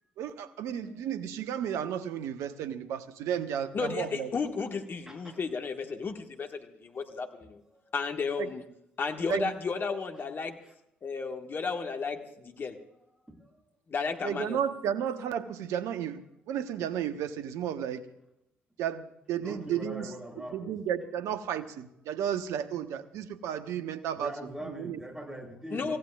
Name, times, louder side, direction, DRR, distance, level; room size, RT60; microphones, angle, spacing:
voice 1, 0.2-4.3 8.4-8.5 9.3-9.5 14.2-18.0 18.8-20.1 20.5-24.3 24.6-25.0, right 9 dB, 65° right, 10 dB, 1.0 m, -33 dB
voice 2, 3.7-7.6 7.9-8.6 9.0-10.6 11.0-12.8 13.9-14.6 25.7-26.0, left 5 dB, 40° left, 4 dB, 1.6 m, -33 dB
voice 3, 5.1-5.4 13.3-13.5 19.4-20.8 24.2-26.0, right 1 dB, 10° right, 0 dB, 7.5 m, -42 dB
26.0 x 16.0 x 2.4 m, 0.80 s
hypercardioid pair, 50°, 6 cm